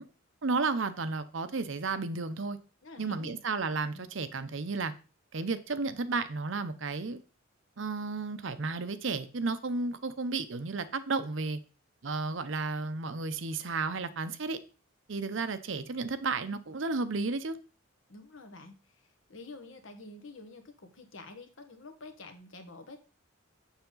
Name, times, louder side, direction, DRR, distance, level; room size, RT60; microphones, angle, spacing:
voice 1, 0.4-2.6 3.0-4.9 5.3-7.2 7.8-11.6 12.0-14.6 15.1-17.6, right 3 dB, 65° right, 0.7 m, -33 dB
voice 2, 2.8-3.3 3.9-4.1 18.1-23.0, left 3 dB, 70° left, 1.3 m, -48 dB
7.1 x 6.6 x 3.9 m
head